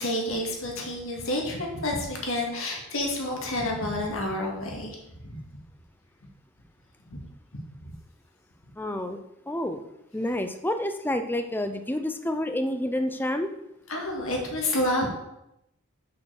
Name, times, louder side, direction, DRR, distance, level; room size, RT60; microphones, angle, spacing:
voice 1, 0.0-5.4 7.1-7.2 7.8-7.9 13.9-15.1, left 1 dB, 65° left, 0 dB, 2.0 m, -29 dB
voice 2, 8.8-9.2 9.5-9.8 10.1-13.5, left 1 dB, 10° left, 7 dB, 0.6 m, -29 dB
6.7 x 5.7 x 6.4 m, 0.84 s
head